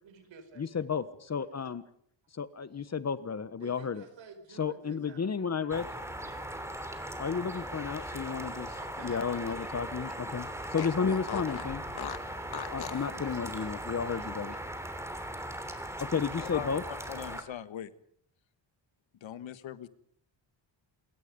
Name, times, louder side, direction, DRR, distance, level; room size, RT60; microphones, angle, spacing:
voice 1, 0.0-0.7 3.6-5.6 6.5-6.7 8.2-11.0 13.0-14.6, right 5 dB, 70° right, 8 dB, 5.2 m, -53 dB
voice 2, 0.6-1.8 2.4-4.0 4.6-5.9 7.2-8.7 9.0-10.5 10.7-11.8 12.7-14.6 16.0-16.8, left 6 dB, 35° left, 14 dB, 1.3 m, -32 dB
sound 1, 5.7-17.4, right 1 dB, 5° right, 3.1 m, -39 dB
Fart, 7.8-9.8 10.1-10.2 10.7-13.1, left 8 dB, 55° left, 2.1 m, -41 dB
voice 3, 16.4-17.9 19.2-19.9, left 11 dB, 75° left, 13 dB, 1.5 m, -41 dB
27.5 x 22.5 x 5.4 m, 0.65 s
wide cardioid pair, 145°, 46 cm